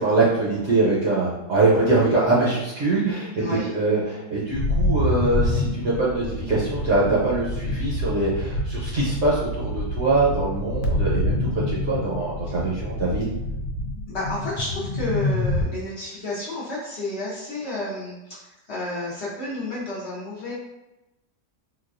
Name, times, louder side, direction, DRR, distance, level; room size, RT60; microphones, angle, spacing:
voice 1, 0.0-3.4 3.7-13.3, right 2 dB, 60° right, -7 dB, 0.8 m, -23 dB
voice 2, 3.4-3.7 12.4-12.6 14.1-20.5, left 2 dB, 55° left, -7 dB, 0.9 m, -31 dB
sound 1, 4.5-15.6, left 1 dB, 85° left, 1.2 m, -27 dB
3.9 x 2.3 x 2.5 m, 0.98 s
omnidirectional pair, 1.7 m